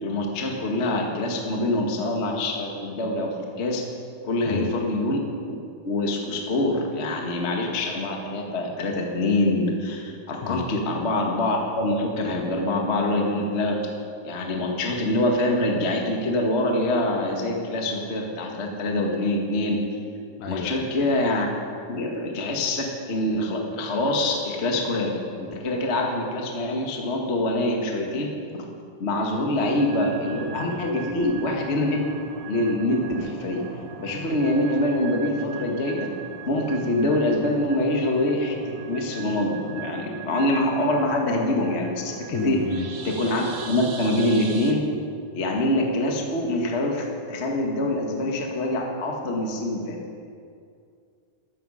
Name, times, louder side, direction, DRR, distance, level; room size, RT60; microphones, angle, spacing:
voice 1, 0.0-3.8 4.2-5.2 5.8-13.8 14.2-19.8 20.4-21.5 21.9-28.3 29.0-32.1 32.5-33.6 34.0-36.1 36.4-38.6 38.9-42.6 43.0-44.8 45.3-50.0, left 1 dB, 35° left, 1 dB, 1.0 m, -25 dB
voice 2, 20.4-20.9 42.3-42.9, left 7 dB, 70° left, 5 dB, 2.1 m, -31 dB
sound 1, 29.6-44.7, right 6 dB, 55° right, 1.8 m, -39 dB
14.0 x 14.0 x 5.6 m, 2.3 s
omnidirectional pair, 4.1 m